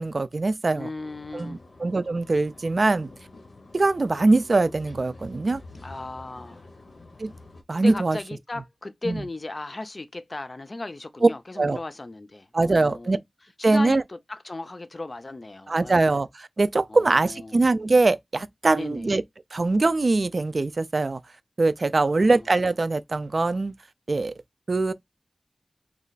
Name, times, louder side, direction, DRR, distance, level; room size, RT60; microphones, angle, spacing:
voice 1, 0.0-0.9 1.3-3.1 3.7-5.6 7.2-7.3 7.7-8.2 9.1-9.2 11.2-11.3 11.6-11.8 12.5-13.2 13.6-14.0 15.7-19.2 19.5-21.2 21.6-23.7 24.1-24.3 24.7-24.9, right 3 dB, 60° right, 0.3 m, -22 dB
voice 2, 0.7-1.6 5.8-6.6 7.7-13.2 13.6-16.0 16.9-17.6 18.8-19.1 22.2-22.4, left 2 dB, 50° left, 0.4 m, -36 dB
sound 1, 1.0-7.6, left 2 dB, 85° left, 0.7 m, -48 dB
3.2 x 2.3 x 3.9 m
wide cardioid pair, 60°, 0 cm